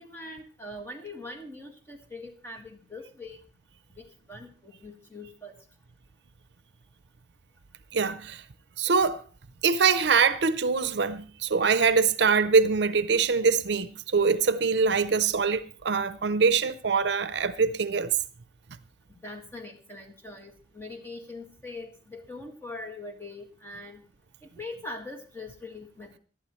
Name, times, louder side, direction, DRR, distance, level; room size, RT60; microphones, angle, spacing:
voice 1, 0.0-3.4 3.9-5.5 19.1-24.0 24.6-26.2, left 2 dB, 15° left, 1.7 m, -42 dB
voice 2, 7.9-8.4 8.8-9.2 9.6-18.1, right 5 dB, 65° right, 0.6 m, -23 dB
17.0 x 11.5 x 3.1 m
head